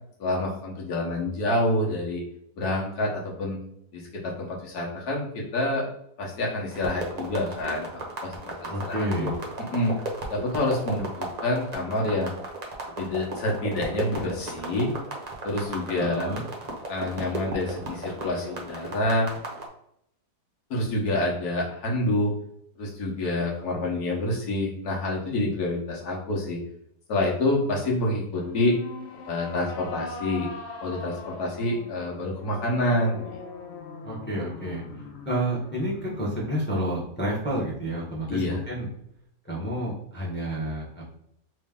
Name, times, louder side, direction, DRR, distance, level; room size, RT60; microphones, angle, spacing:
voice 1, 0.2-2.2 2.6-3.6 3.9-5.8 6.2-7.9 8.2-9.9 10.3-12.3 13.0-14.9 15.4-16.3 16.9-19.3 20.7-22.3 22.8-26.6 27.1-28.8 29.3-30.5 30.8-33.4 38.3-38.6, left 1 dB, 65° left, -2 dB, 1.6 m, -27 dB
sound 1, 6.7-19.6, right 2 dB, 35° right, 0.7 m, -35 dB
voice 2, 8.7-9.3 15.9-16.4 34.0-34.8 35.3-38.9 39.5-41.1, right 1 dB, 10° left, -4 dB, 0.9 m, -29 dB
sound 2, 28.3-37.7, left 4 dB, 85° left, 0.5 m, -42 dB
3.2 x 3.2 x 3.5 m, 0.74 s
omnidirectional pair, 1.8 m